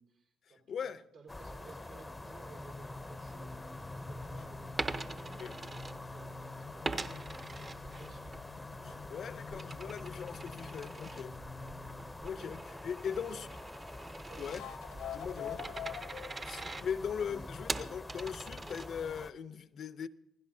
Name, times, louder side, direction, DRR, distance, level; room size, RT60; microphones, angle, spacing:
voice 1, 0.0-8.3 8.8-9.5 10.2-11.2 12.4-12.6 13.1-13.5 14.3-14.5 15.3-16.0, right 5 dB, 80° right, 4.7 m, -57 dB
voice 2, 0.7-1.0 5.4-5.5 9.1-11.4 12.2-13.5 14.4-14.6 15.0-15.6 16.4-20.1, left 7 dB, 60° left, 0.6 m, -39 dB
sound 1, 1.3-19.3, left 2 dB, 15° left, 0.6 m, -47 dB
sound 2, 2.0-12.2 14.4-18.1, left 6 dB, 85° left, 1.0 m, -48 dB
Coin (dropping), 4.8-6.4 6.8-8.4 8.8-19.3, right 3 dB, 35° right, 0.9 m, -43 dB
26.5 x 16.0 x 2.7 m
cardioid pair, 90°, 0 cm